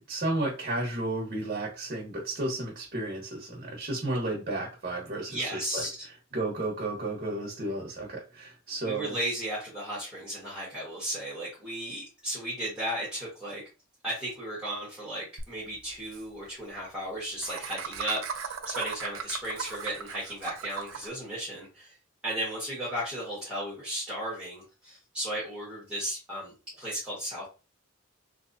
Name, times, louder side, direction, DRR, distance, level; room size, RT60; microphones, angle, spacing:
voice 1, 0.0-9.2, right 2 dB, 40° right, -2 dB, 1.1 m, -33 dB
voice 2, 5.3-6.0 8.8-13.6 14.0-21.9 22.2-27.5, right 1 dB, 5° right, -8 dB, 1.5 m, -35 dB
Laughter, 15.4-15.5 15.7-15.8 16.0-16.2 17.4-21.1, right 6 dB, 80° right, 0.6 m, -37 dB
3.3 x 3.0 x 2.7 m, 0.32 s
head